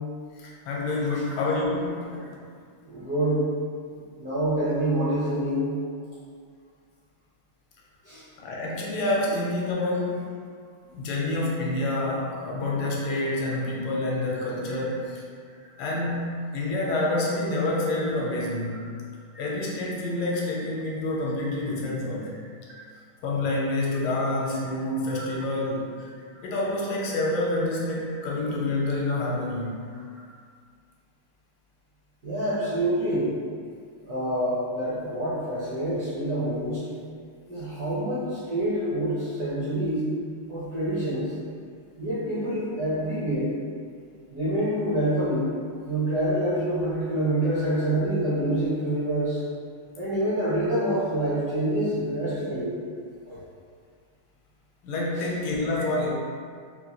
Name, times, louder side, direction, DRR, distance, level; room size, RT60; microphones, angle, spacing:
voice 1, 0.4-2.2 8.4-10.2 10.9-15.2 15.8-18.8 19.4-22.4 23.2-25.9 26.4-29.8 54.8-56.1, left 2 dB, 80° left, -3 dB, 1.5 m, -27 dB
voice 2, 2.8-3.4 3.9-5.8 8.0-8.2 10.9-11.0 14.3-14.4 14.7-14.8 19.3-19.4 20.7-20.8 22.3-22.4 22.7-22.8 28.2-28.3 32.2-33.3 34.0-36.8 37.5-40.1 40.5-41.4 42.0-43.5 44.3-45.5 45.9-49.4 50.0-52.7 53.2-53.4 55.2-55.3, right 1 dB, 65° right, -10 dB, 1.0 m, -27 dB
4.1 x 2.2 x 2.8 m, 2.1 s
omnidirectional pair, 2.4 m